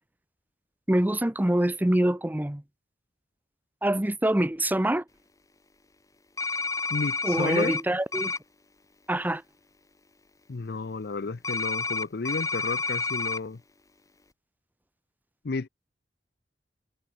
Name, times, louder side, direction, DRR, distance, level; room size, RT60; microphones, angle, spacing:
voice 1, 0.9-2.6 3.8-5.0 7.2-8.3 9.1-9.4, right 1 dB, 10° right, 0.6 m, -25 dB
sound 1, 6.4-7.8 8.1-8.4 11.4-13.4, left 4 dB, 20° left, 1.5 m, -29 dB
voice 2, 6.9-7.7 10.5-13.6 15.4-15.7, left 3 dB, 60° left, 0.6 m, -32 dB
head